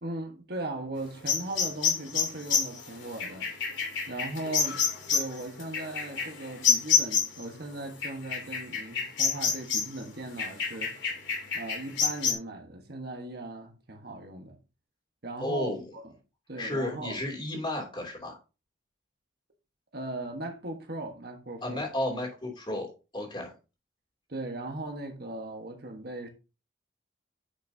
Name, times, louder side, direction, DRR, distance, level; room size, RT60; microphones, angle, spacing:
voice 1, 0.0-3.5 4.1-10.9 11.5-14.5 15.2-16.1 16.5-17.2 19.9-21.9 24.3-26.3, right 2 dB, 55° right, 1.4 m, -38 dB
sound 1, 1.3-7.4 8.0-10.0 10.4-12.3, left 6 dB, 75° left, 3.0 m, -28 dB
voice 2, 15.4-15.8 16.6-18.4 21.6-23.5, left 1 dB, 25° left, 2.8 m, -33 dB
9.9 x 6.0 x 2.8 m
head